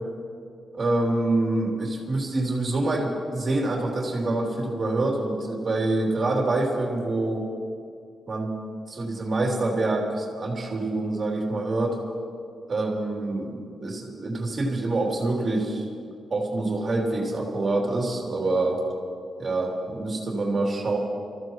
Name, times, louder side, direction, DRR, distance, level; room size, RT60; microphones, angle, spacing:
voice 1, 0.7-7.5 8.3-12.0 12.7-15.9 16.3-18.8 19.4-21.0, right 2 dB, 40° right, -2 dB, 3.1 m, -26 dB
26.5 x 14.5 x 3.1 m, 2.3 s
cardioid pair, 90°, 0 cm